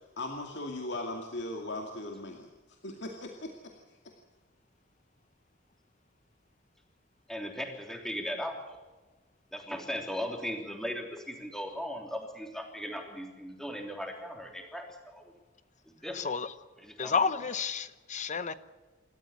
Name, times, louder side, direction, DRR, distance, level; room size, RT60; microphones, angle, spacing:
voice 1, 0.0-4.0, left 2 dB, 65° left, 2 dB, 2.3 m, -39 dB
voice 2, 7.3-8.8 9.5-15.3 15.9-16.3 16.8-17.5, equal, 5° left, 2 dB, 3.2 m, -38 dB
voice 3, 16.2-16.5 17.0-18.5, left 5 dB, 40° left, 14 dB, 0.9 m, -30 dB
26.5 x 13.5 x 8.5 m, 1.3 s
head